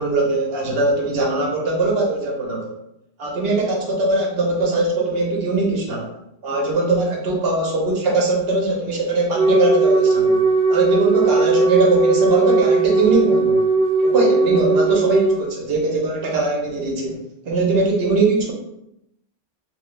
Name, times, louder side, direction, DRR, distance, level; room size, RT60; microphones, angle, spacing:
voice 1, 0.0-2.7 3.2-6.1 6.4-10.4 10.7-13.6 14.0-18.5, right 2 dB, 65° right, 0 dB, 1.1 m, -21 dB
Wind instrument woodwind instrument, 9.3-15.4, right 3 dB, 5° left, 0.9 m, -18 dB
3.0 x 2.8 x 3.1 m, 0.82 s
omnidirectional pair, 1.1 m